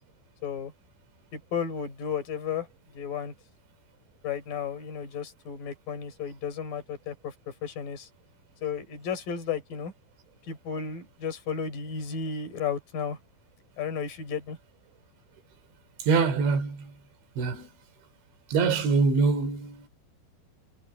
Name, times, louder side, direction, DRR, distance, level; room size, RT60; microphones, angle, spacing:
voice 1, 1.3-2.7 2.9-3.3 4.2-8.1 8.6-9.9 10.5-13.2 13.8-14.6, left 7 dB, 45° left, 6.0 m, -33 dB
voice 2, 16.0-16.9 17.4-17.7 18.5-19.9, right 4 dB, 65° right, 5.6 m, -24 dB
omnidirectional pair, 5.7 m